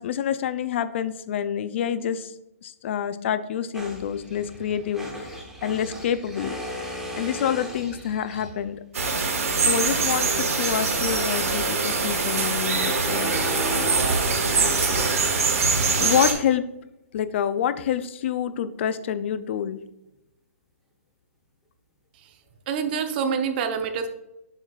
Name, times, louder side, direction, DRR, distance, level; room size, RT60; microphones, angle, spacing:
voice 1, 0.0-2.3 2.6-6.6 7.2-8.8 9.6-13.4 16.0-16.6 17.1-19.8, left 9 dB, 50° left, 13 dB, 0.5 m, -27 dB
sound 1, 3.7-8.7 11.7-15.9, equal, 5° right, 1.3 m, -35 dB
sound 2, 8.9-16.3, right 4 dB, 70° right, 1.8 m, -23 dB
voice 2, 22.7-24.1, right 6 dB, 40° right, 7 dB, 0.7 m, -26 dB
7.4 x 6.4 x 2.4 m, 0.90 s
hypercardioid pair, 145°, 8 cm